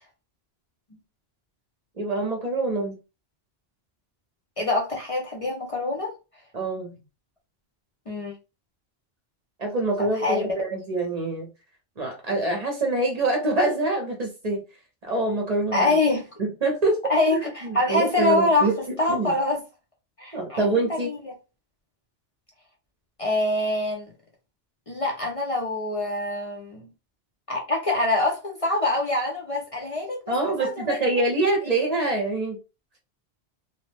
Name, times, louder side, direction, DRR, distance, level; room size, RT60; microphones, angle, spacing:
voice 1, 2.0-3.0 6.5-7.0 9.6-11.5 12.0-14.6 15.0-16.0 16.4-17.0 17.3-19.3 20.3-21.1 30.3-32.6, right 2 dB, 45° right, 0.7 m, -25 dB
voice 2, 4.6-6.1 8.1-8.3 10.1-10.5 15.7-16.3 17.1-19.6 20.2-21.3 23.2-24.1 24.9-26.8 27.5-30.2 30.6-31.0, left 2 dB, 45° left, 0.5 m, -25 dB
2.7 x 2.0 x 3.2 m
omnidirectional pair, 1.1 m